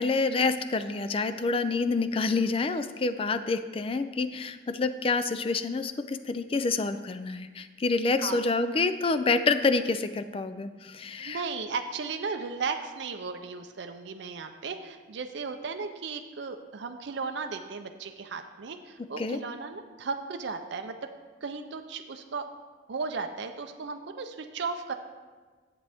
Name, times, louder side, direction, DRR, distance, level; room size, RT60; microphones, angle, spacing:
voice 1, 0.0-11.4 19.2-19.4, left 3 dB, 30° left, 11 dB, 0.3 m, -27 dB
voice 2, 11.2-21.1 21.4-22.5 22.9-24.9, right 4 dB, 65° right, 5 dB, 0.5 m, -35 dB
11.0 x 7.5 x 3.4 m, 1.4 s
head